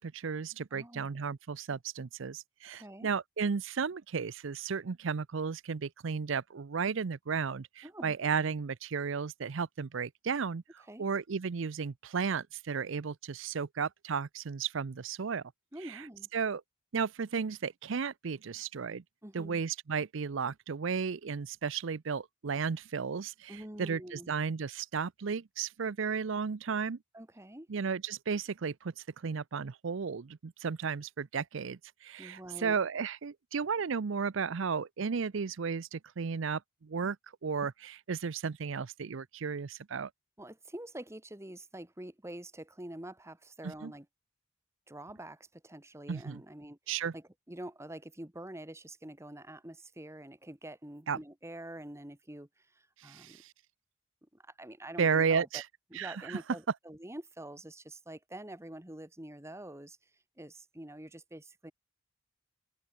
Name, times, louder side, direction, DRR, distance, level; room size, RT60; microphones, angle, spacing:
voice 1, 0.0-15.4 15.8-16.0 16.3-16.6 16.9-19.0 19.3-27.0 27.7-37.2 37.4-40.1 43.6-43.9 46.1-46.4 46.9-47.1 51.1-51.2 53.0-53.5 55.0-55.7 55.9-56.4, right 6 dB, 65° right, 0.5 m, -34 dB
voice 2, 0.7-1.2 2.7-3.1 7.8-8.2 10.9-11.1 15.7-16.3 19.2-19.6 23.5-24.3 27.1-27.7 32.2-32.8 40.4-44.1 44.9-46.8 47.1-53.4 54.3-55.6 55.9-60.0 60.4-61.7, right 1 dB, 15° right, 1.6 m, -46 dB
head